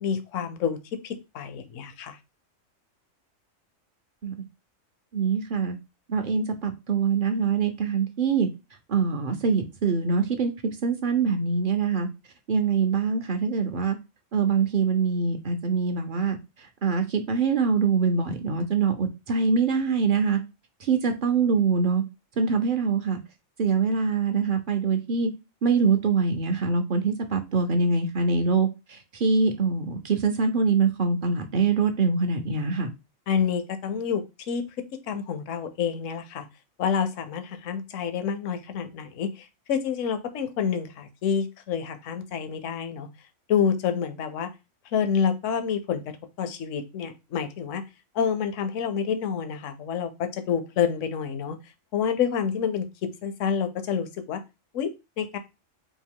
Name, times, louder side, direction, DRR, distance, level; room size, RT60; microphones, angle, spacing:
voice 1, 0.0-0.8 1.0-2.2 33.3-34.7 35.1-36.5 36.8-43.1 43.5-44.5 44.9-46.0 46.4-47.8 48.1-51.6 51.9-54.4 54.7-54.9 55.2-55.4, left 7 dB, 75° left, 1.0 m, -28 dB
voice 2, 5.1-5.8 6.1-8.5 8.9-12.1 12.5-14.0 14.3-20.4 20.8-22.0 22.4-23.2 23.6-25.3 25.6-32.9, right 5 dB, 55° right, 0.6 m, -24 dB
4.3 x 2.7 x 3.6 m
omnidirectional pair, 1.4 m